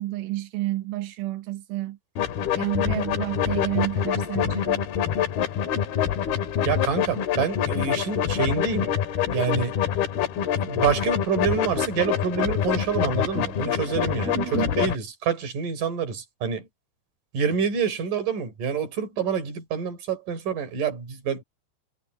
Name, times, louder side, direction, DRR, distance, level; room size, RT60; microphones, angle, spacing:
voice 1, 0.0-2.0 2.6-4.9 14.3-14.9, right 16 dB, 85° right, 3.6 m, -30 dB
sound 1, 2.2-15.0, left 9 dB, 60° left, 3.3 m, -26 dB
voice 2, 6.7-9.0 9.3-9.8 10.6-16.7 17.3-21.4, right 6 dB, 45° right, 5.0 m, -27 dB
omnidirectional pair, 5.5 m